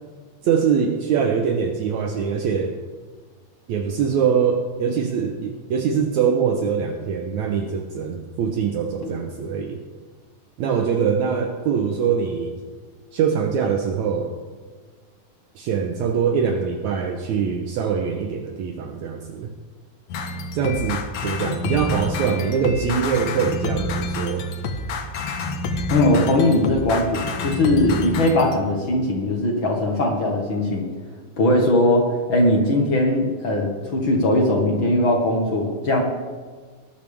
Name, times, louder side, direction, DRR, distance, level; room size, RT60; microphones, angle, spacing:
voice 1, 0.4-2.7 3.7-9.8 10.6-12.6 13.1-14.3 15.6-19.5 20.5-24.5, right 6 dB, 70° right, 4 dB, 2.1 m, -23 dB
sound 1, 20.1-28.6, left 2 dB, 65° left, 2.0 m, -28 dB
voice 2, 25.9-30.9 31.4-36.0, left 1 dB, 45° left, 0 dB, 2.0 m, -20 dB
19.5 x 10.5 x 3.5 m, 1.5 s
omnidirectional pair, 3.6 m